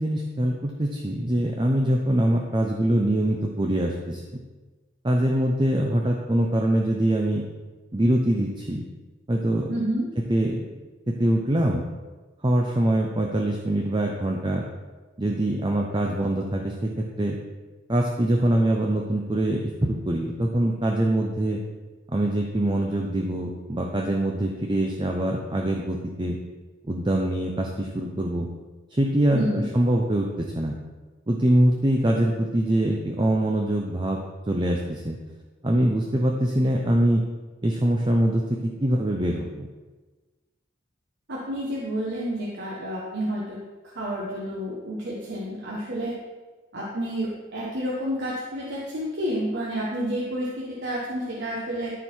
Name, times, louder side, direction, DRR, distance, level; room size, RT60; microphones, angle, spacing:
voice 1, 0.0-4.2 5.0-7.4 7.9-8.8 9.3-9.7 10.3-10.6 11.1-11.8 12.4-14.6 15.2-17.4 17.9-21.6 22.1-26.4 26.9-28.5 28.9-30.7 31.3-34.2 34.5-35.2 35.6-37.2 37.6-39.7, right 1 dB, 25° right, 1 dB, 0.7 m, -23 dB
voice 2, 9.7-10.1 29.3-29.6 41.3-43.6 43.9-46.1 46.7-50.5 50.8-51.9, equal, 60° right, -5 dB, 1.5 m, -29 dB
13.5 x 4.6 x 4.6 m, 1.3 s
head